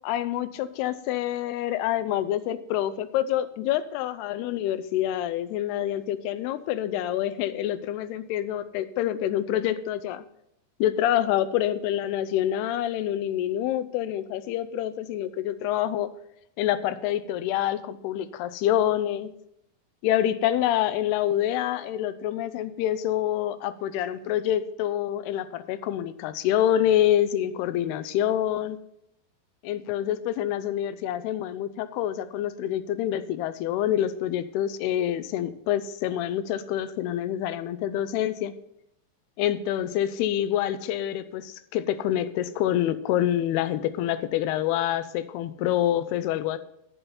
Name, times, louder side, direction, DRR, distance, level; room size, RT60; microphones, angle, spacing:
voice 1, 0.0-10.2 10.8-16.1 16.6-19.3 20.0-28.8 29.6-38.5 39.4-46.6, left 11 dB, 85° left, 13 dB, 2.6 m, -27 dB
11.0 x 9.6 x 4.3 m, 0.79 s
omnidirectional pair, 4.7 m